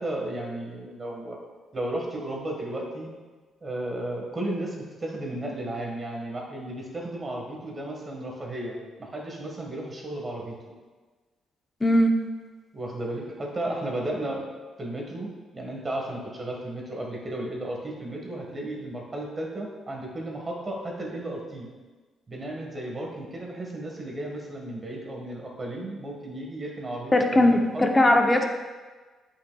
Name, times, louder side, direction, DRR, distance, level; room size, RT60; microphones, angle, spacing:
voice 1, 0.0-1.4 1.7-3.1 3.6-10.5 12.7-14.5 14.8-21.7 22.3-28.0, right 1 dB, 30° right, 0 dB, 1.5 m, -34 dB
voice 2, 11.8-12.2 27.1-28.5, left 1 dB, 20° left, 4 dB, 0.7 m, -19 dB
8.3 x 5.4 x 2.3 m, 1.3 s
cardioid pair, 90°, 0 cm